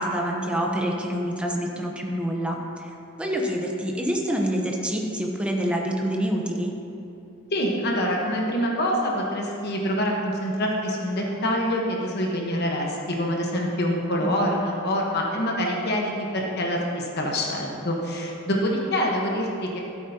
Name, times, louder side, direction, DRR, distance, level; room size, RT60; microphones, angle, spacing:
voice 1, 0.0-2.9 3.2-6.7 14.2-14.7, equal, 5° right, 0 dB, 0.9 m, -27 dB
voice 2, 7.5-19.8, equal, 55° left, -1 dB, 1.2 m, -26 dB
13.5 x 8.4 x 2.9 m, 2.8 s
head